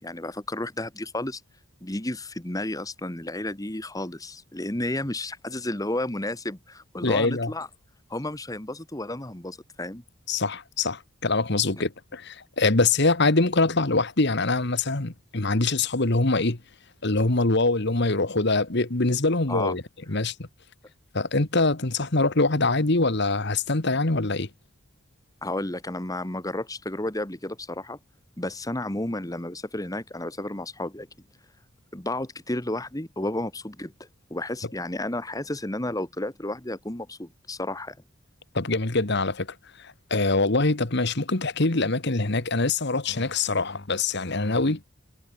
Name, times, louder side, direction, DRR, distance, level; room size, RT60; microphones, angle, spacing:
voice 1, 0.0-1.4 1.8-7.7 8.1-10.0 19.5-19.7 25.4-28.0 28.4-31.1 31.9-33.9 34.3-38.0, left 1 dB, 15° left, 1.5 m, -32 dB
voice 2, 7.0-7.5 10.3-16.6 17.0-19.8 20.1-20.5 21.1-24.5 38.5-39.5 39.8-44.8, left 3 dB, 55° left, 1.6 m, -24 dB
head